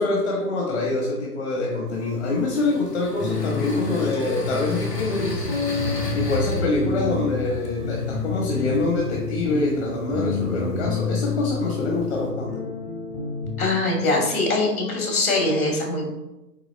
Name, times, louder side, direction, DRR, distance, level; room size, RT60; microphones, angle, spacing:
voice 1, 0.0-5.5 6.1-12.6, left 2 dB, 45° left, -1 dB, 1.5 m, -25 dB
sound 1, 1.9-12.3, left 2 dB, 80° left, 1.7 m, -34 dB
sound 2, 3.2-13.7, left 4 dB, 15° left, 0.7 m, -29 dB
voice 2, 13.6-16.0, left 2 dB, 60° left, 0 dB, 2.4 m, -22 dB
8.3 x 3.3 x 4.3 m, 0.96 s
figure-of-eight pair, 130°, 48 cm